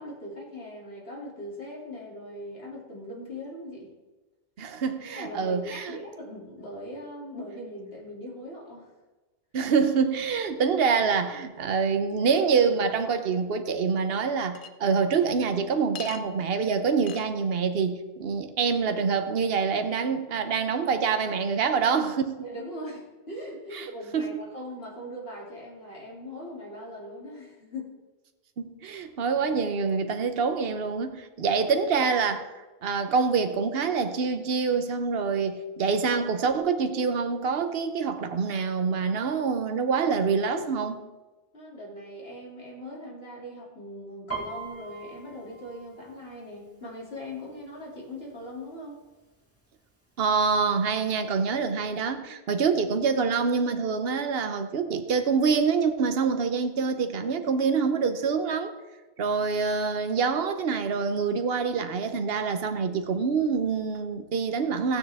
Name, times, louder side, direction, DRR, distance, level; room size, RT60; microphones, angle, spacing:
voice 1, 0.0-3.9 5.1-8.9 22.4-27.9 41.5-49.0, left 1 dB, 75° left, -4 dB, 3.0 m, -40 dB
voice 2, 4.6-5.9 9.5-22.4 23.7-23.9 24.1-24.3 28.6-32.5 32.8-41.0 50.2-58.7 59.2-65.0, right 5 dB, 70° right, 8 dB, 1.1 m, -26 dB
Chink clink, 14.6-14.7 16.0-16.2 17.1-17.3, left 7 dB, 60° left, 0.8 m, -39 dB
Piano, 44.3-47.9 48.3-48.7 49.0-49.7 50.3-50.4 50.6-51.6 52.0-52.1, right 5 dB, 15° left, 2.2 m, -41 dB
15.0 x 9.1 x 3.5 m, 1.2 s
omnidirectional pair, 1.0 m